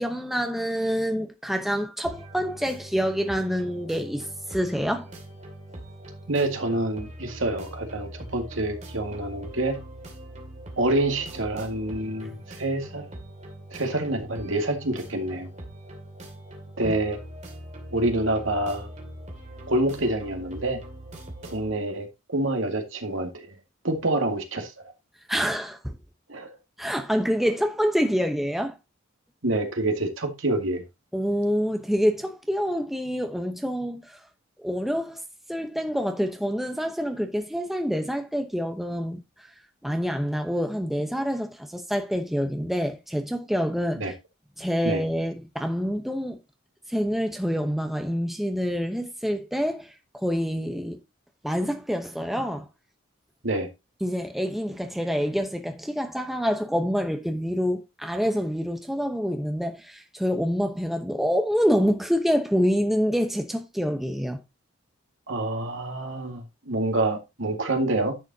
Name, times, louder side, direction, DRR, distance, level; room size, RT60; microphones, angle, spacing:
voice 1, 0.0-5.1 16.8-16.9 25.3-25.9 26.8-28.8 31.1-34.2 34.6-35.2 35.5-39.5 39.8-44.1 44.6-46.4 46.9-51.0 51.4-52.7 54.0-64.4, equal, ahead, 0.9 m, -27 dB
sound 1, 2.0-21.7, right 1 dB, 35° right, 2.5 m, -42 dB
voice 2, 6.3-9.8 10.8-13.1 13.7-15.5 16.8-17.2 17.9-18.9 19.7-20.8 21.4-23.6 23.8-24.7 26.3-26.5 29.4-30.8 44.0-44.1 44.8-45.0 53.4-53.7 65.3-68.2, right 2 dB, 75° right, 2.1 m, -27 dB
10.5 x 7.0 x 2.8 m
head